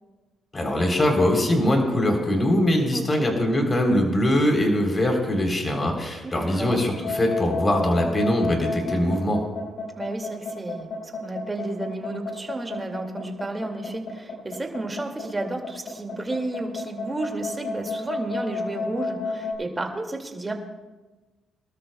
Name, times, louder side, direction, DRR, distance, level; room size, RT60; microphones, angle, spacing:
voice 1, 0.5-9.4, left 1 dB, 25° left, 2 dB, 3.5 m, -22 dB
voice 2, 2.9-3.3 6.2-6.8 9.9-10.9 11.2-20.5, right 2 dB, 20° right, 2 dB, 2.2 m, -32 dB
sound 1, 6.9-19.5, left 4 dB, 70° left, 4.9 m, -31 dB
24.5 x 13.0 x 2.3 m, 1.2 s
cardioid pair, 90°, 0 cm